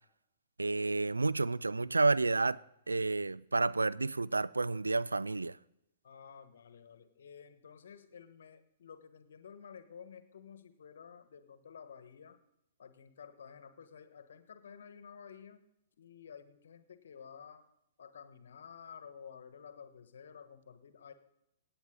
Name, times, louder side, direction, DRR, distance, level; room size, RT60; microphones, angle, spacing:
voice 1, 0.6-2.6 2.9-5.6, right 3 dB, 85° right, 0.3 m, -30 dB
voice 2, 6.0-12.4 12.8-15.6 16.0-17.6 18.0-21.1, left 7 dB, 65° left, 1.2 m, -52 dB
17.0 x 8.8 x 3.7 m
figure-of-eight pair, 115°, 0 cm